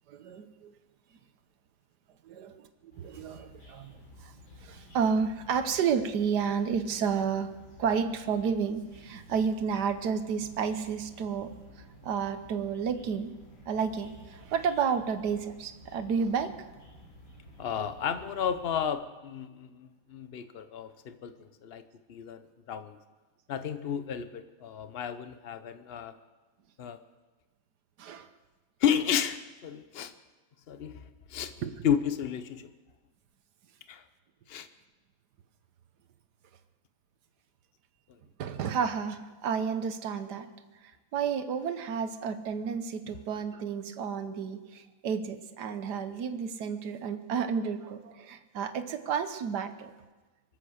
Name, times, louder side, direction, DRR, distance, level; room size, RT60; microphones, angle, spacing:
voice 1, 0.1-0.7 2.2-2.7 3.0-4.0 4.2-4.3 4.6-7.5 7.8-11.5 12.0-13.3 13.7-16.5 28.0-28.3 31.6-31.7 38.4-40.5 41.1-49.9, right 6 dB, 60° right, 10 dB, 1.5 m, -31 dB
sound 1, 2.9-18.9, equal, 75° left, 4.7 m, -53 dB
voice 2, 17.6-21.8 22.1-23.0 23.5-26.1 26.8-27.0 28.8-30.1 30.7-31.5 31.8-32.7 33.9-34.0 34.5-34.7 38.1-38.2, left 8 dB, 50° left, 10 dB, 0.7 m, -32 dB
24.5 x 8.3 x 6.4 m, 1.2 s
omnidirectional pair, 2.1 m